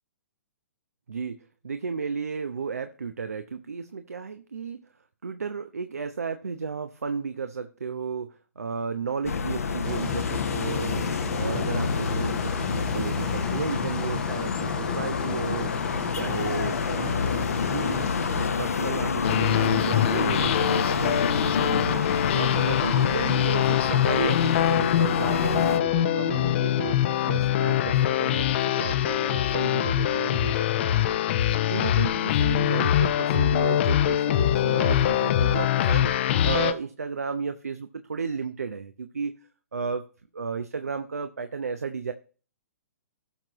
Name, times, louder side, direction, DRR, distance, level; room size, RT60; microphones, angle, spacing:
voice 1, 1.6-4.8 5.2-11.1 11.4-15.8 16.1-22.0 22.3-28.5 28.8-31.2 31.7-39.3 39.7-40.1 40.3-42.1, right 5 dB, 75° right, 9 dB, 0.8 m, -33 dB
sound 1, 9.2-25.8, left 5 dB, 70° left, 1.0 m, -28 dB
sound 2, 9.8-18.5, left 4 dB, 10° left, 0.7 m, -38 dB
sound 3, 19.2-36.7, left 11 dB, 45° left, 0.7 m, -24 dB
17.0 x 6.0 x 3.0 m, 0.38 s
figure-of-eight pair, 120°, 8 cm